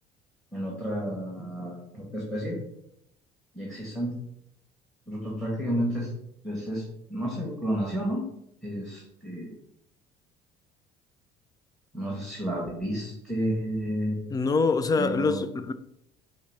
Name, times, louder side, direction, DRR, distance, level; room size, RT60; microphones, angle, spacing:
voice 1, 0.5-2.6 3.5-4.2 5.1-6.1 6.4-8.2 8.6-9.5 11.9-14.2 15.0-15.4, equal, ahead, 1.4 m, -31 dB
voice 2, 14.3-15.7, left 4 dB, 20° left, 0.3 m, -24 dB
5.5 x 2.1 x 4.6 m
hypercardioid pair, 60°, 21 cm